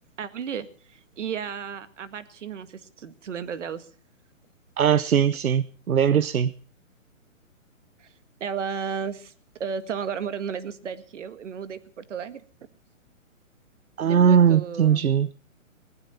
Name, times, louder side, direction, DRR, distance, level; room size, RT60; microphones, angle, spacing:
voice 1, 0.2-3.9 8.0-8.1 8.4-9.3 9.6-12.4 14.0-15.0, right 7 dB, 60° right, 1.9 m, -33 dB
voice 2, 4.8-6.5 14.0-15.3, right 8 dB, 90° right, 0.9 m, -20 dB
19.5 x 12.5 x 5.7 m
hypercardioid pair, 155°, 41 cm